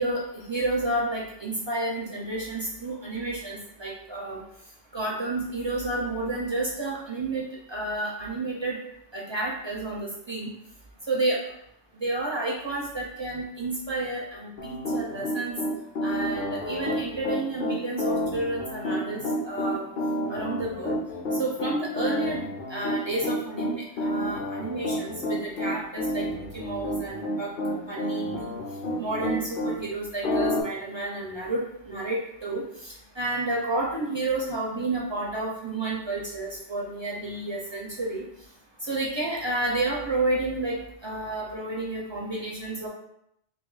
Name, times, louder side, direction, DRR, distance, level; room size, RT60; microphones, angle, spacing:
voice 1, 0.0-4.4 4.9-8.8 9.1-10.5 11.1-11.4 11.9-15.5 16.0-19.9 20.3-21.0 21.4-27.5 27.8-28.6 29.0-38.2 38.8-40.7 41.0-42.9, right 2 dB, 40° right, -4 dB, 0.4 m, -30 dB
Piano, 14.6-29.8 30.2-30.6, left 1 dB, 55° left, 0.7 m, -29 dB
2.7 x 2.4 x 3.8 m, 0.75 s
omnidirectional pair, 1.2 m